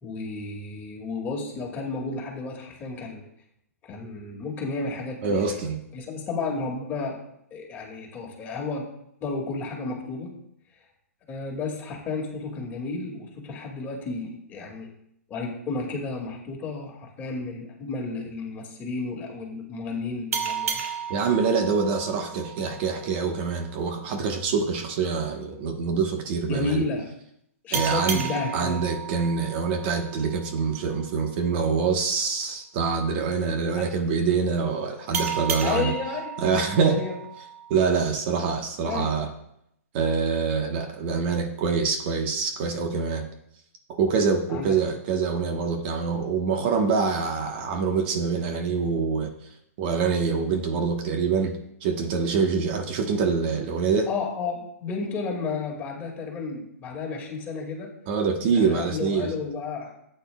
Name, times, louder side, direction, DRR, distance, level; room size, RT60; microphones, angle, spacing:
voice 1, 0.0-3.2 3.8-5.4 5.9-7.2 7.5-8.9 9.2-10.3 11.3-14.9 15.3-20.8 26.5-27.0 27.6-28.8 35.6-36.3 36.9-37.1 38.8-39.2 44.5-44.7 54.1-57.9 58.5-59.9, left 4 dB, 20° left, 0 dB, 2.2 m, -32 dB
voice 2, 5.2-5.8 21.1-26.8 27.7-28.3 28.5-35.9 36.4-37.0 37.7-39.3 39.9-43.2 44.0-49.3 49.8-54.1 58.1-59.3, right 5 dB, 40° right, 4 dB, 1.2 m, -25 dB
sound 1, 20.3-23.5 27.7-31.0 35.1-38.1, right 7 dB, 65° right, 1.6 m, -33 dB
13.0 x 9.0 x 2.3 m, 0.76 s
hypercardioid pair, 145°, 8 cm